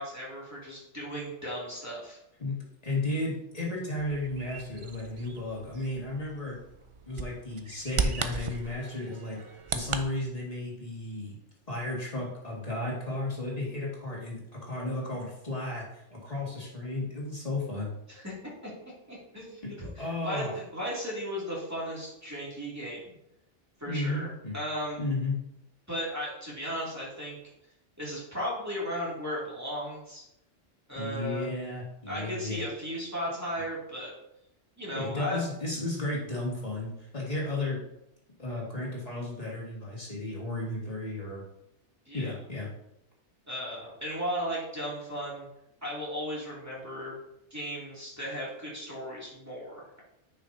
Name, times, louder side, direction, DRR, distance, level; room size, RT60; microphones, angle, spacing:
voice 1, 0.0-2.2 18.1-18.3 18.6-18.7 19.1-23.1 23.8-25.0 25.9-27.4 28.0-30.2 30.9-31.5 32.1-34.1 34.8-35.5 42.1-42.4 43.5-45.5 45.8-47.1 47.5-50.0, equal, 15° right, -6 dB, 2.4 m, -36 dB
voice 2, 2.4-6.6 7.1-9.4 9.7-11.4 11.7-17.9 20.0-20.5 23.9-24.6 25.0-25.4 31.0-32.6 34.9-37.8 38.4-41.4 42.1-42.7, left 2 dB, 30° left, -4 dB, 2.1 m, -34 dB
Bird vocalization bird call bird song, 4.0-10.0, right 5 dB, 60° right, 0.3 m, -36 dB
9.6 x 5.5 x 2.7 m, 0.82 s
omnidirectional pair, 1.2 m